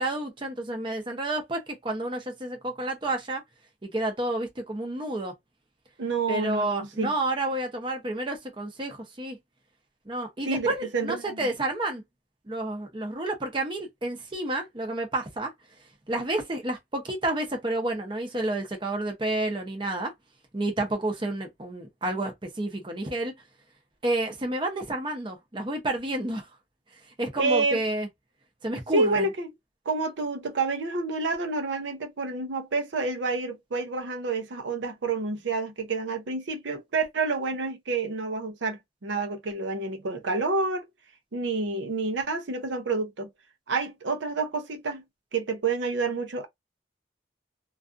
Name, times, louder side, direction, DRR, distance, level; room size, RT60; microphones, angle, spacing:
voice 1, 0.0-3.4 3.8-5.3 6.3-9.4 10.1-12.0 12.5-15.5 16.1-20.1 20.5-23.3 24.0-26.4 27.2-28.1 28.6-29.3, right 2 dB, 25° right, 0.6 m, -30 dB
voice 2, 6.0-7.1 10.5-10.7 10.9-11.5 27.4-27.8 28.9-29.5 29.9-40.9 41.3-43.3 43.7-45.0 45.3-46.5, right 3 dB, 75° right, 0.6 m, -28 dB
2.4 x 2.4 x 2.4 m
head